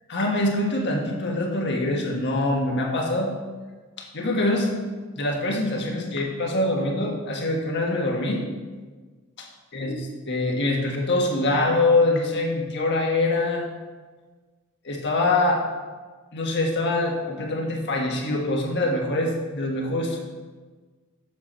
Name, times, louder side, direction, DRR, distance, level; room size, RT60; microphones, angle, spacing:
voice 1, 0.1-3.3 4.1-4.8 5.2-8.4 9.4-9.5 9.7-13.7 14.8-15.6 16.3-20.2, left 2 dB, 55° left, 0 dB, 1.4 m, -24 dB
7.7 x 6.8 x 4.3 m, 1.4 s
head